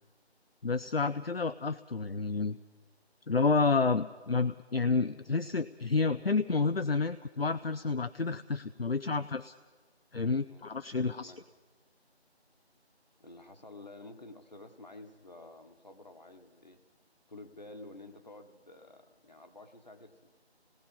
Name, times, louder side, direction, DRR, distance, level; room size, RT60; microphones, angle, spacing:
voice 1, 0.6-2.6 3.3-9.5 10.1-11.3, left 4 dB, 60° left, 11 dB, 0.6 m, -30 dB
voice 2, 13.2-16.8 17.3-20.3, left 2 dB, 40° left, 7 dB, 1.4 m, -50 dB
27.0 x 19.0 x 5.5 m, 1.4 s
figure-of-eight pair, 165°, 33 cm